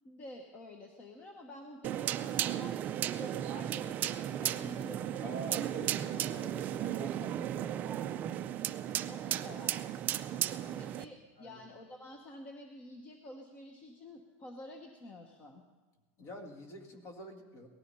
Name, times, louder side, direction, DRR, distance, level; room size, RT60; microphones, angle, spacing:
voice 1, 0.0-5.4 9.1-9.9 10.8-15.6, left 1 dB, 25° left, 4 dB, 1.0 m, -49 dB
sound 1, 1.8-11.0, right 11 dB, 25° right, 0.4 m, -35 dB
voice 2, 5.2-8.1 10.2-10.9 11.4-11.6 16.2-17.7, equal, 40° left, 5 dB, 1.8 m, -47 dB
18.5 x 13.5 x 5.5 m, 1.3 s
supercardioid pair, 175°, 7 cm